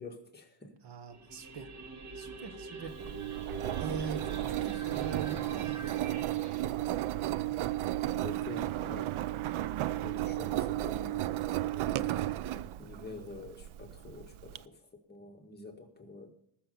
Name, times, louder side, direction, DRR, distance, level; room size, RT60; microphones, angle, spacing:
voice 1, 0.0-0.7 8.1-9.1 9.7-12.3 12.8-16.3, left 2 dB, 20° left, 2 dB, 1.9 m, -47 dB
voice 2, 0.8-1.7 2.1-2.9 3.8-6.0, right 5 dB, 55° right, 9 dB, 1.4 m, -42 dB
sound 1, 1.1-6.6, right 3 dB, 35° right, 1.8 m, -45 dB
Engine, 2.9-14.6, right 14 dB, 75° right, 0.7 m, -34 dB
20.0 x 6.8 x 5.6 m, 0.75 s
wide cardioid pair, 165°, 50 cm